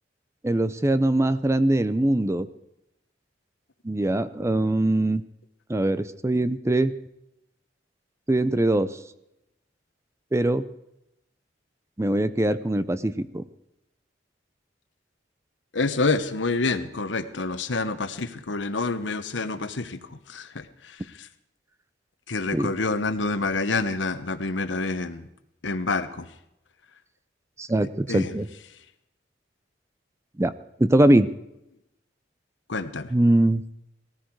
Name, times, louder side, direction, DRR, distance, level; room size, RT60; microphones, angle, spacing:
voice 1, 0.4-2.5 3.8-5.2 5.7-6.9 8.3-8.9 10.3-10.6 12.0-13.4 22.5-22.7 27.6-28.5 30.4-30.5 30.8-31.3 33.1-33.6, right 1 dB, 15° right, 13 dB, 0.6 m, -22 dB
voice 2, 15.7-21.3 22.3-25.3 25.6-26.3 28.1-28.4 32.7-33.1, left 3 dB, 80° left, 11 dB, 1.1 m, -28 dB
18.0 x 14.5 x 4.7 m, 0.83 s
head